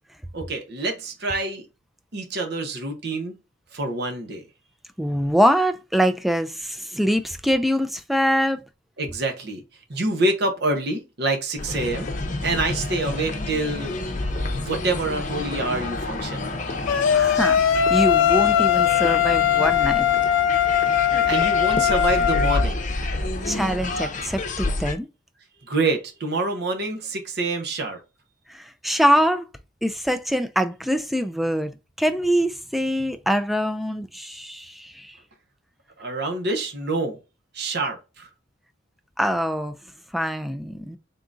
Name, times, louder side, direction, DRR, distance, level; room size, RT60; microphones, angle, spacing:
voice 1, 0.3-1.6 2.1-3.4 3.7-4.4 9.0-9.6 9.9-12.1 12.4-14.0 14.3-16.5 21.3-22.8 25.7-28.0 36.0-37.2 37.5-38.3, right 2 dB, 60° right, 0.9 m, -26 dB
voice 2, 5.0-8.6 17.1-17.6 17.9-20.1 23.5-25.1 28.5-29.5 29.8-35.2 39.2-39.8 40.1-41.0, equal, ahead, 0.3 m, -24 dB
sound 1, 11.6-24.9, left 2 dB, 40° left, 0.7 m, -29 dB
sound 2, 16.9-22.6, left 9 dB, 85° left, 0.4 m, -20 dB
3.8 x 3.6 x 2.5 m
head